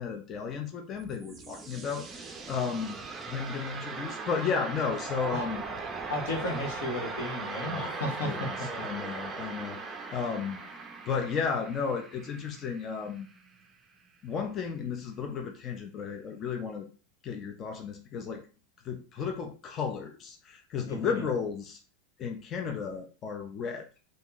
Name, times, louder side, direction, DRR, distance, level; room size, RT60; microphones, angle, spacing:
voice 1, 0.0-3.0 3.3-5.6 6.5-6.6 7.7-10.6 11.1-13.3 14.2-16.9 17.2-18.4 18.8-21.8 22.2-23.9, left 6 dB, 35° left, 4 dB, 0.5 m, -34 dB
sound 1, 0.8-13.6, right 4 dB, 20° right, 0.5 m, -39 dB
voice 2, 6.1-8.7 20.9-21.2, left 1 dB, 85° left, 1 dB, 1.3 m, -34 dB
2.9 x 2.6 x 3.8 m, 0.36 s
supercardioid pair, 135°, 0 cm